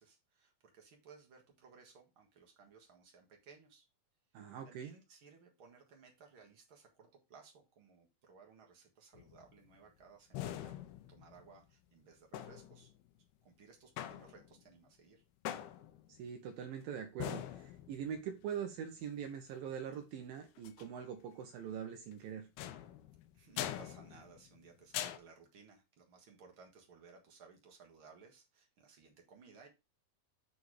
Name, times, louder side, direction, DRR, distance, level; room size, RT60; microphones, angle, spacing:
voice 1, 0.0-3.9 4.6-12.9 13.4-15.2 23.3-29.7, right 5 dB, 50° right, 1.5 m, -60 dB
voice 2, 4.3-4.9 16.1-22.5, right 8 dB, 75° right, 2.4 m, -43 dB
sound 1, 9.2-9.7 10.3-11.6 12.3-13.0 14.0-14.7 15.5-16.2 17.2-18.2 20.6-20.9 22.6-24.6 24.9-25.2, left 12 dB, 90° left, 2.8 m, -43 dB
8.3 x 4.0 x 4.7 m
omnidirectional pair, 4.5 m